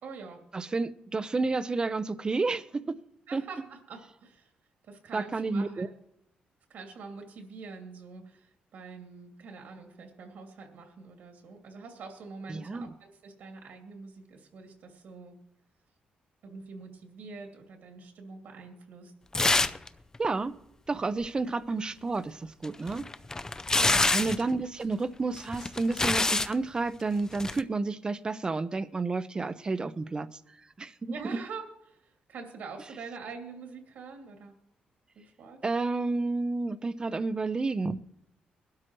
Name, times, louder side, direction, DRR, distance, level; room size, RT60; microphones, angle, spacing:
voice 1, 0.0-0.4 3.3-4.5 4.8-5.9 6.7-15.3 16.4-19.1 23.7-24.0 31.1-34.5 35.1-35.6, right 4 dB, 80° right, 2.6 m, -45 dB
voice 2, 0.5-2.6 3.3-3.4 5.1-5.9 12.5-12.9 20.2-20.5 20.9-23.0 24.1-30.3 30.8-31.1 35.6-38.0, right 3 dB, 25° right, 0.6 m, -30 dB
sound 1, 19.3-19.9 20.1-20.2 22.6-24.4 25.4-26.5 27.3-27.6, left 2 dB, 20° left, 0.5 m, -26 dB
20.5 x 12.5 x 3.1 m
cardioid pair, 100°, 3 cm